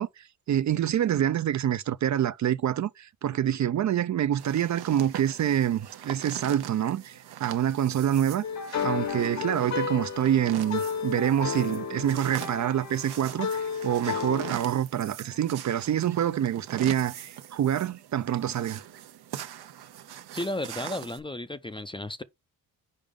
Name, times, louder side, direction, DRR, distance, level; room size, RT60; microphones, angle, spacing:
voice 1, 0.0-8.4 8.8-18.8, right 10 dB, 50° right, 0.4 m, -26 dB
sound 1, 4.4-21.2, right 11 dB, 90° right, 0.8 m, -42 dB
sound 2, 8.4-14.5, left 6 dB, 45° left, 1.0 m, -32 dB
voice 2, 20.3-22.2, left 1 dB, 15° left, 0.4 m, -33 dB
5.2 x 5.0 x 3.6 m
cardioid pair, 90°, 38 cm